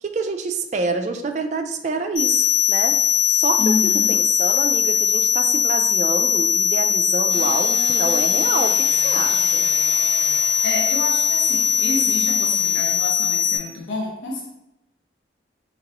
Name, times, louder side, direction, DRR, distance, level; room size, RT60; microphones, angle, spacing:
voice 1, 0.0-3.0 3.3-9.7, right 4 dB, 40° right, 5 dB, 0.3 m, -27 dB
sound 1, 2.2-13.6, left 7 dB, 45° left, 0.8 m, -20 dB
voice 2, 3.6-4.2 10.6-14.4, left 2 dB, 90° left, -1 dB, 0.6 m, -28 dB
Engine starting / Sawing, 7.3-13.0, left 1 dB, 70° left, 1.0 m, -37 dB
4.0 x 2.9 x 2.9 m, 0.87 s
head